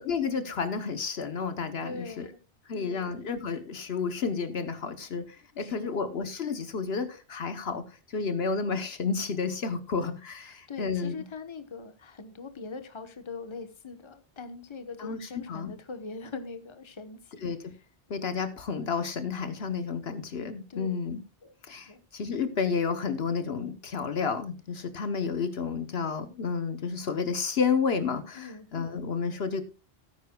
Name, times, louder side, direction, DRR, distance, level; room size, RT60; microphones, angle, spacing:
voice 1, 0.0-2.3 2.7-11.1 15.0-15.7 17.4-17.8 18.1-21.2 21.6-29.6, left 5 dB, 65° left, 10 dB, 1.1 m, -31 dB
voice 2, 1.8-2.3 2.7-3.2 5.6-6.0 10.5-17.4 20.7-20.9 21.4-21.5 21.9-22.0 28.3-28.7, left 4 dB, 25° left, 9 dB, 1.0 m, -42 dB
17.5 x 9.5 x 2.3 m, 0.30 s
omnidirectional pair, 1.2 m